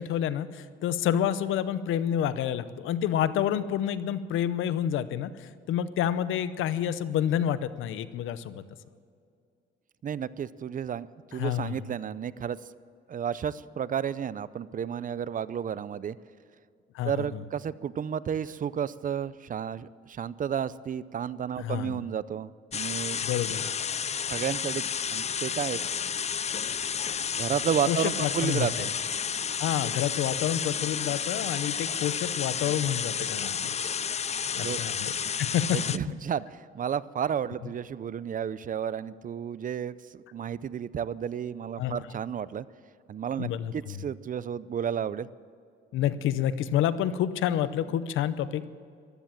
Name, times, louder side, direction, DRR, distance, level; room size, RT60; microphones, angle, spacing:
voice 1, 0.0-8.6 11.3-11.8 16.9-17.4 21.6-22.0 23.2-23.7 27.9-28.9 29.6-33.8 34.5-35.1 35.4-35.8 41.8-42.0 43.4-44.0 45.9-48.7, left 10 dB, 85° left, 15 dB, 0.8 m, -29 dB
voice 2, 10.0-11.1 11.3-12.6 13.1-16.2 17.0-23.2 24.2-24.8 25.1-25.8 27.3-28.9 34.6-34.8 35.7-42.6 43.1-43.5 43.7-45.3, right 8 dB, 45° right, 18 dB, 0.5 m, -32 dB
sound 1, 22.7-36.0, left 7 dB, 35° left, 0.5 m, -31 dB
15.0 x 12.5 x 7.5 m, 2.3 s
cardioid pair, 90°, 20 cm